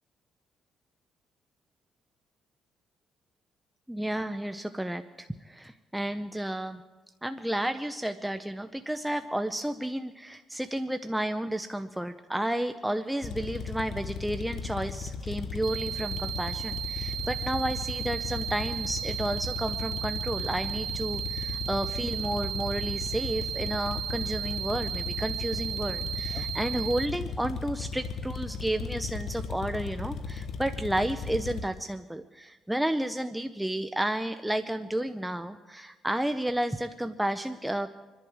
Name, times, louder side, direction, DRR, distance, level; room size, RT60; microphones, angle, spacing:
voice 1, 3.9-6.8 7.2-37.9, right 1 dB, 5° right, 8 dB, 0.6 m, -32 dB
sound 1, 13.2-31.7, left 5 dB, 60° left, 1.1 m, -36 dB
sound 2, 15.6-27.1, right 10 dB, 80° right, 0.4 m, -35 dB
27.0 x 11.0 x 4.8 m, 1.2 s
cardioid pair, 90°, 0 cm